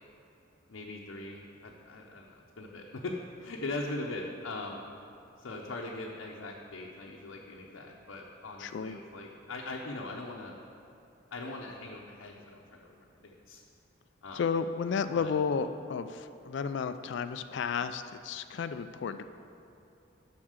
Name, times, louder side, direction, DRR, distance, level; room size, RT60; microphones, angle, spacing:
voice 1, 0.7-4.8 5.4-10.6 11.3-13.6 14.2-14.4 15.1-15.3, left 2 dB, 85° left, -2 dB, 0.7 m, -41 dB
voice 2, 8.6-9.0 14.3-19.2, left 6 dB, 65° left, 10 dB, 0.3 m, -32 dB
7.2 x 5.8 x 6.5 m, 2.8 s
head